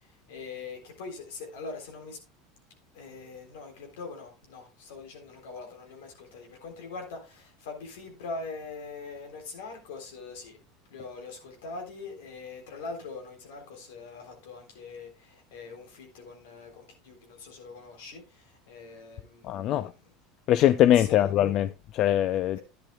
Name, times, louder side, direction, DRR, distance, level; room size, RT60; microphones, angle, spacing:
voice 1, 0.3-2.2 2.9-10.6 10.9-20.1 20.9-21.6, left 4 dB, 80° left, 3.6 m, -42 dB
voice 2, 19.4-19.9 20.5-22.6, left 12 dB, 50° left, 0.4 m, -22 dB
11.5 x 10.0 x 2.3 m
supercardioid pair, 105°, 0 cm